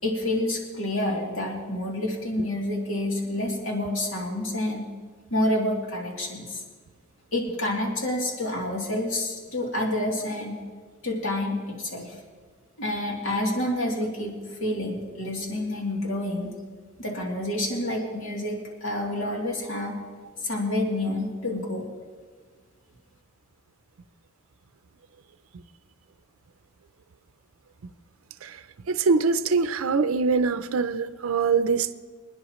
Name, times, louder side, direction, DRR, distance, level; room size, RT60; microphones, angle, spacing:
voice 1, 0.0-4.9 5.3-6.6 7.3-10.6 11.0-12.2 12.8-16.5 17.0-18.6 18.8-19.9 20.4-21.8, left 1 dB, 70° left, 2.9 m, -28 dB
voice 2, 28.9-31.9, right 4 dB, 85° right, 0.5 m, -23 dB
26.0 x 10.0 x 3.1 m
head